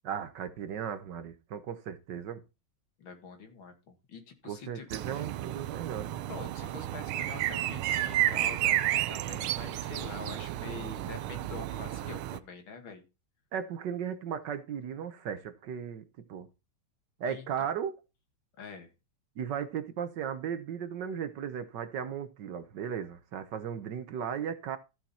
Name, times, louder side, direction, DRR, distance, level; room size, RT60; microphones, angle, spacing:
voice 1, 0.0-2.4 4.4-6.2 13.5-16.0 16.3-16.5 17.2-18.0 19.4-24.8, right 8 dB, 65° right, 1.4 m, -36 dB
voice 2, 3.0-4.9 5.1-5.2 6.2-13.0 17.3-17.4 18.6-18.9, left 5 dB, 70° left, 2.6 m, -45 dB
sound 1, 4.9-12.4, right 13 dB, 85° right, 1.5 m, -32 dB
14.5 x 5.8 x 4.2 m
omnidirectional pair, 2.3 m